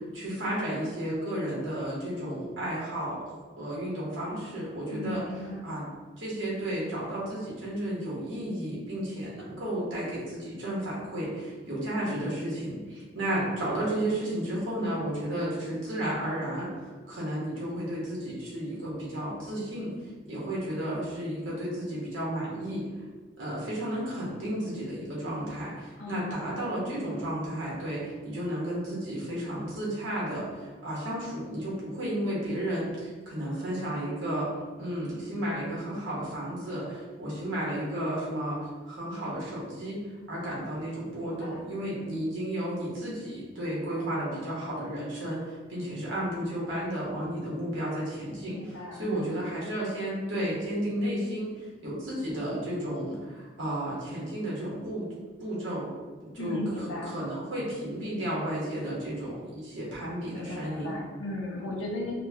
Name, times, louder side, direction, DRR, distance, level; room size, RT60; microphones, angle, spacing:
voice 1, 0.1-3.2 3.6-5.2 5.6-5.8 6.2-19.9 20.3-22.8 23.4-34.5 34.8-51.5 51.8-55.1 55.4-55.9 56.2-60.9, right 1 dB, 70° right, -6 dB, 1.3 m, -33 dB
voice 2, 4.9-5.6 26.0-26.6 41.2-42.2 48.5-49.3 56.4-57.2 60.3-62.1, left 2 dB, 75° left, -2 dB, 0.7 m, -37 dB
4.3 x 2.3 x 2.8 m, 1.4 s
head